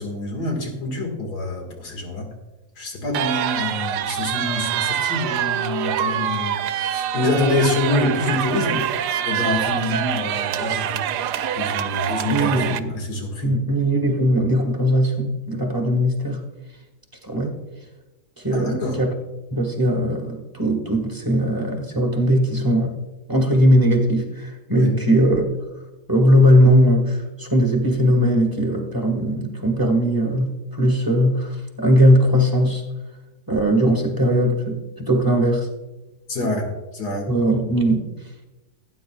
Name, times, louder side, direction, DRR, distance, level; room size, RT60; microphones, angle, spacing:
voice 1, 0.0-2.3 2.8-11.0 11.6-13.5 18.5-19.0 24.7-25.0 36.3-37.3, left 2 dB, 80° left, 2 dB, 2.5 m, -26 dB
sound 1, 3.1-12.8, right 10 dB, 85° right, 1.2 m, -25 dB
voice 2, 12.3-12.9 13.4-16.4 17.2-17.5 18.4-19.1 19.5-22.9 23.3-25.4 26.1-32.8 33.5-35.7 37.3-38.1, equal, 15° right, 1 dB, 1.6 m, -19 dB
17.5 x 9.4 x 2.3 m, 1.1 s
omnidirectional pair, 1.7 m